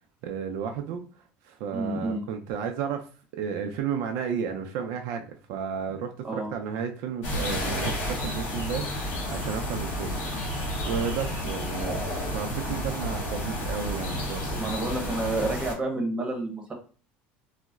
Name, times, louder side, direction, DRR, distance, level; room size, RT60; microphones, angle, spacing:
voice 1, 0.2-1.0 1.4-3.0 3.3-10.5 10.9-12.0 12.3-14.7, right 7 dB, 75° right, 4 dB, 0.4 m, -33 dB
voice 2, 1.7-2.2 6.2-6.5 14.6-16.7, right 2 dB, 15° right, 2 dB, 1.0 m, -29 dB
sound 1, 7.2-15.7, left 1 dB, 55° left, 1.4 m, -31 dB
3.9 x 2.0 x 2.3 m, 0.39 s
supercardioid pair, 120°, 5 cm